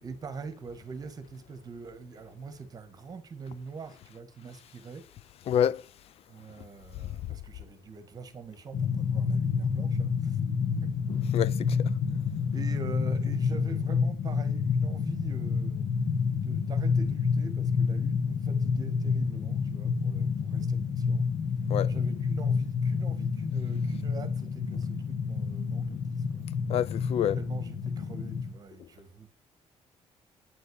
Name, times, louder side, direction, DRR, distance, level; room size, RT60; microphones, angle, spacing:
voice 1, 0.0-5.0 6.3-10.4 12.5-15.8 16.4-21.3 21.8-26.4 27.3-29.3, right 4 dB, 35° right, 1.5 m, -43 dB
voice 2, 5.5-5.8 11.3-11.9 21.7-21.9 26.7-27.4, left 10 dB, 60° left, 0.6 m, -27 dB
sound 1, 8.7-28.5, left 5 dB, 80° left, 1.5 m, -29 dB
9.4 x 7.7 x 8.5 m
cardioid pair, 160°, 11 cm